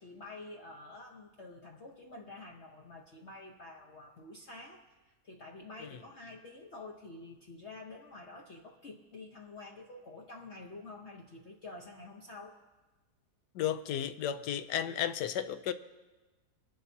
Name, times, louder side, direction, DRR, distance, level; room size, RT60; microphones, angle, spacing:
voice 1, 0.0-4.8 5.2-12.6, left 2 dB, 50° left, 1.0 m, -48 dB
voice 2, 13.5-15.7, left 10 dB, 80° left, 1.2 m, -33 dB
23.0 x 11.5 x 2.7 m
omnidirectional pair, 1.8 m